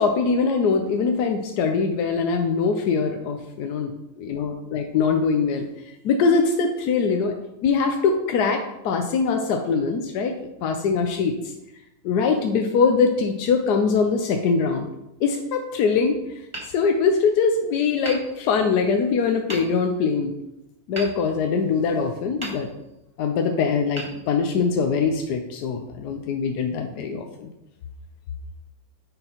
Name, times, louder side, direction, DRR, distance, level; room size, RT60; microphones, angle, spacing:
voice 1, 0.0-3.9 4.2-5.6 6.0-7.3 7.6-10.3 10.6-11.3 12.0-14.9 15.2-16.2 16.7-20.3 20.9-22.7 23.2-27.5, left 5 dB, 80° left, 4 dB, 1.2 m, -22 dB
Hammer, 16.5-17.5 18.0-18.9 19.5-20.1 21.0-21.9 22.4-23.1 23.9-24.9, right 1 dB, 20° right, 1.4 m, -39 dB
8.9 x 5.8 x 3.0 m, 0.89 s
omnidirectional pair, 1.7 m